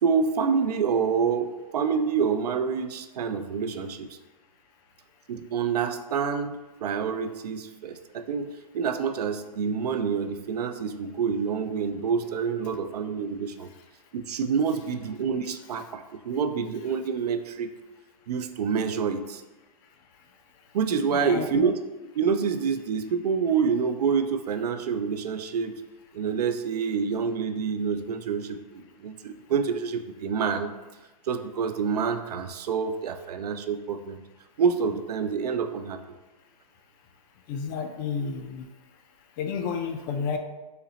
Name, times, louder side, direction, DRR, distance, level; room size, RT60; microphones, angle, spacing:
voice 1, 0.0-4.1 5.3-13.7 14.1-17.8 18.3-19.4 20.7-21.8 22.1-25.8 26.1-30.7 31.3-34.2 34.6-36.0, right 6 dB, 85° right, 9 dB, 0.4 m, -27 dB
voice 2, 21.1-21.5 37.5-38.6 39.4-40.4, left 6 dB, 35° left, 6 dB, 0.4 m, -31 dB
4.0 x 2.0 x 3.9 m, 1.1 s
hypercardioid pair, 140°, 20 cm